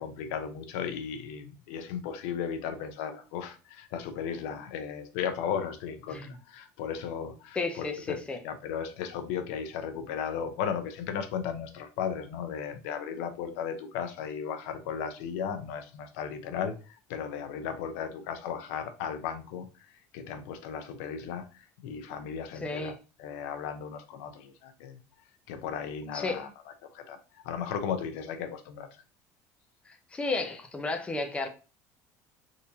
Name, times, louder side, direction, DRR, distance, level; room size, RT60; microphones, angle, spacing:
voice 1, 0.0-8.2 8.4-22.9 23.2-25.0 25.5-26.5 26.9-28.9, left 7 dB, 85° left, 0.6 m, -35 dB
voice 2, 7.6-8.4 22.6-22.9 26.1-26.4 29.9-31.5, left 3 dB, 15° left, 0.6 m, -33 dB
3.6 x 2.8 x 2.7 m
cardioid pair, 130°, 8 cm